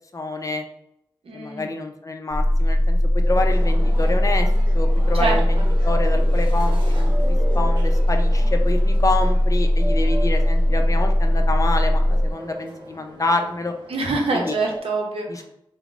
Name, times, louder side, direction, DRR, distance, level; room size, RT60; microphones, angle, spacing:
voice 1, 0.1-0.6 1.3-4.5 4.7-13.7 14.3-14.5 15.3-15.4, left 2 dB, 35° left, 5 dB, 0.4 m, -27 dB
voice 2, 1.2-1.7 5.2-5.6 13.9-15.4, right 3 dB, 85° right, 0 dB, 0.6 m, -25 dB
sound 1, 2.3-12.3, left 1 dB, 30° right, 0.8 m, -19 dB
sound 2, 3.2-14.8, right 1 dB, 55° right, 0.9 m, -38 dB
3.7 x 2.0 x 2.4 m, 0.78 s
wide cardioid pair, 70°, 10 cm